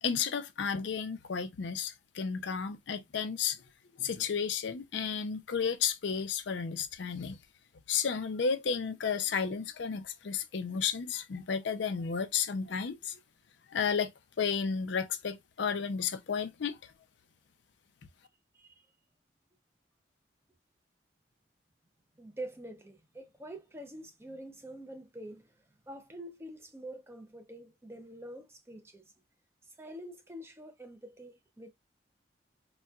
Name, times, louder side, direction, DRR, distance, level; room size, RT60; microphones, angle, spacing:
voice 1, 0.0-3.6 4.0-7.4 7.9-13.2 13.7-14.1 14.4-16.8, left 6 dB, 75° left, 0.5 m, -32 dB
voice 2, 22.2-25.5 25.9-29.0 29.8-31.7, right 1 dB, 15° right, 0.5 m, -46 dB
4.0 x 2.2 x 2.3 m
head